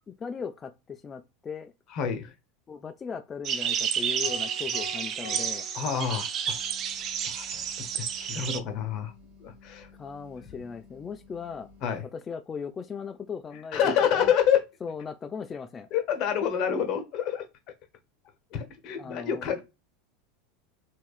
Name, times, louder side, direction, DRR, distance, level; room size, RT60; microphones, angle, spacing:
voice 1, 0.1-1.7 2.7-5.7 10.0-11.7 12.1-14.3 14.8-15.9 18.9-19.4, left 6 dB, 25° left, 0.3 m, -38 dB
voice 2, 1.9-2.3 5.7-6.6 7.2-7.6 8.0-9.1 9.4-9.9 11.8-12.0 13.7-14.6 15.9-17.5 18.5-19.6, left 8 dB, 50° left, 0.8 m, -27 dB
sound 1, 3.4-8.6, right 8 dB, 40° right, 0.4 m, -30 dB
sound 2, 4.2-6.7, left 3 dB, 80° left, 0.7 m, -45 dB
sound 3, 6.5-12.0, left 4 dB, 60° right, 1.1 m, -54 dB
3.4 x 3.0 x 2.4 m
figure-of-eight pair, 80°, 0 cm